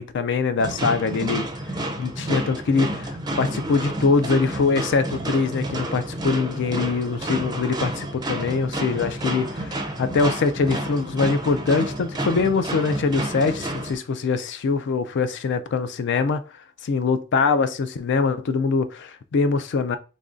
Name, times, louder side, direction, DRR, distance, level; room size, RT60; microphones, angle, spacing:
voice 1, 0.0-1.5 2.0-16.4 16.9-20.0, left 4 dB, 55° left, 0.4 m, -23 dB
sound 1, 0.6-14.0, right 1 dB, 20° right, 0.5 m, -30 dB
3.1 x 2.6 x 3.6 m
head